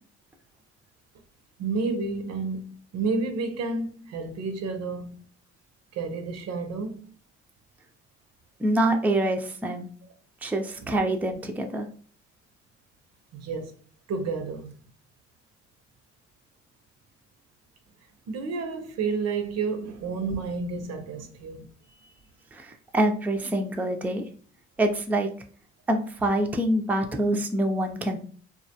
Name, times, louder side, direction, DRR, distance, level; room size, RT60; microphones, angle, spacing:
voice 1, 1.6-5.2 5.9-7.0 10.8-10.9 13.3-13.7 14.1-14.7 18.3-21.7 22.0-22.1, right 4 dB, 60° right, 0.6 m, -30 dB
voice 2, 8.6-9.9 10.4-11.9 22.5-24.2 24.8-25.3 25.9-28.2, right 1 dB, 5° right, 0.4 m, -25 dB
2.3 x 2.2 x 2.7 m
supercardioid pair, 60°, 29 cm